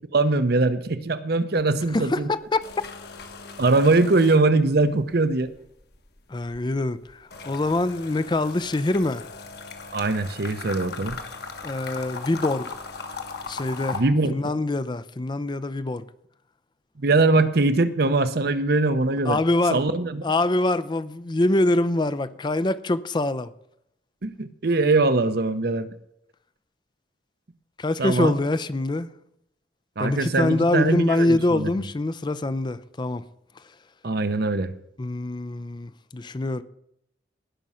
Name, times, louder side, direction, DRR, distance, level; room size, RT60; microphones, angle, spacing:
voice 1, 0.1-2.3 3.6-5.5 9.9-11.2 13.9-14.4 17.0-19.4 19.7-20.2 24.2-25.9 28.0-28.3 30.0-31.7 34.0-34.7, right 3 dB, 55° right, 0.8 m, -22 dB
sound 1, 1.6-2.0 2.3-4.9 5.2-14.0, left 4 dB, 60° left, 1.4 m, -38 dB
voice 2, 1.9-2.7 6.3-9.3 11.6-12.7 13.5-14.0 14.3-16.0 19.3-19.8 20.2-23.5 27.8-29.1 30.0-33.2 33.6-33.7 35.0-36.6, left 2 dB, 25° left, 0.5 m, -24 dB
18.0 x 6.2 x 5.6 m
head